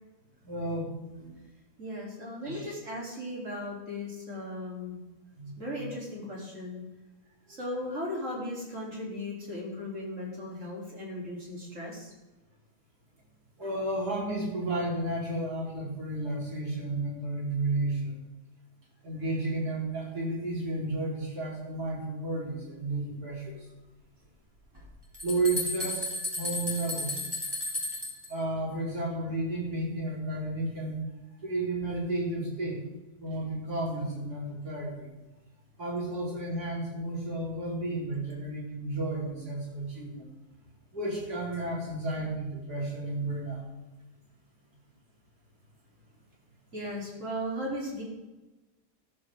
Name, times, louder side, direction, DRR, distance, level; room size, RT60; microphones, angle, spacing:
voice 1, 0.4-0.9 1.2-1.3 2.4-2.7 5.4-5.9 13.6-18.2 19.0-23.6 25.2-26.1 26.4-27.2 28.3-31.0 31.4-32.8 33.2-34.9 35.8-40.2 40.9-43.6, right 2 dB, 75° right, -4 dB, 5.0 m, -32 dB
voice 2, 1.8-5.0 5.6-6.8 7.5-12.1 46.7-48.0, left 1 dB, 50° right, -3 dB, 4.0 m, -37 dB
sound 1, 24.8-24.9 25.1-28.3, left 2 dB, 15° right, 3.7 m, -33 dB
14.0 x 13.0 x 3.8 m, 1.1 s
omnidirectional pair, 1.7 m